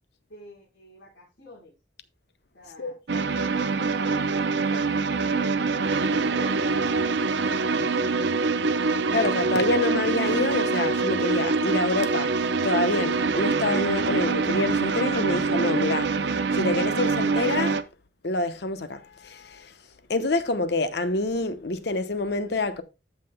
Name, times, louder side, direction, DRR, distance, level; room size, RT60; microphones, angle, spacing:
voice 1, 0.3-1.7 2.5-5.6 5.9-6.7, left 2 dB, 85° left, 4.5 m, -48 dB
sound 1, 3.1-17.8, right 4 dB, 70° right, 0.7 m, -25 dB
voice 2, 9.1-17.8 18.2-19.7 20.1-22.8, left 2 dB, 60° left, 0.9 m, -27 dB
14.5 x 5.8 x 2.2 m
head